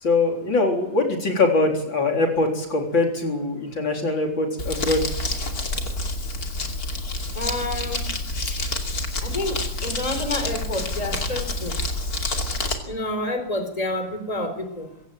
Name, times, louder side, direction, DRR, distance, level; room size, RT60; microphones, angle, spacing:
voice 1, 0.0-5.1, left 3 dB, 70° left, 3 dB, 4.6 m, -22 dB
Crumpling crinkling, 4.6-12.7, left 2 dB, 50° left, 3.2 m, -28 dB
voice 2, 7.3-8.1 8.4-8.5 9.2-11.8 12.8-14.9, left 1 dB, 20° left, 8 dB, 4.0 m, -29 dB
24.5 x 16.5 x 9.2 m, 0.80 s
omnidirectional pair, 2.1 m